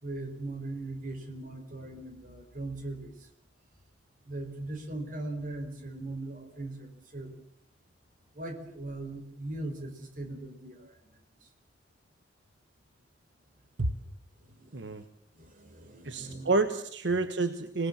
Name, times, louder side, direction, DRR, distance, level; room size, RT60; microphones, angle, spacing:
voice 1, 0.0-3.1 4.2-7.3 8.3-11.1 14.4-15.0 15.4-16.5 17.1-17.3, right 2 dB, 45° right, 5 dB, 4.7 m, -39 dB
voice 2, 14.7-15.0 16.0-17.9, right 3 dB, 80° right, 9 dB, 1.4 m, -29 dB
26.0 x 19.5 x 7.5 m, 0.67 s
head